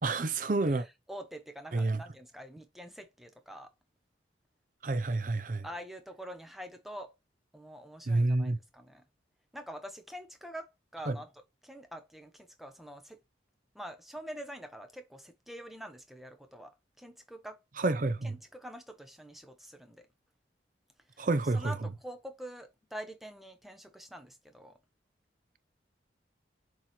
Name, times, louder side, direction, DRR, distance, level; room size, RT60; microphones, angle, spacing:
voice 1, 0.0-0.9 1.7-2.0 4.8-5.7 8.1-8.6 11.1-11.2 17.8-18.4 21.2-21.7, right 2 dB, 45° right, 0.6 m, -29 dB
voice 2, 1.1-3.7 5.6-7.1 7.5-9.0 9.5-11.3 11.6-13.2 13.7-17.6 18.2-20.1 21.1-21.3 21.5-24.8, equal, ahead, 0.8 m, -45 dB
7.3 x 3.1 x 4.2 m
head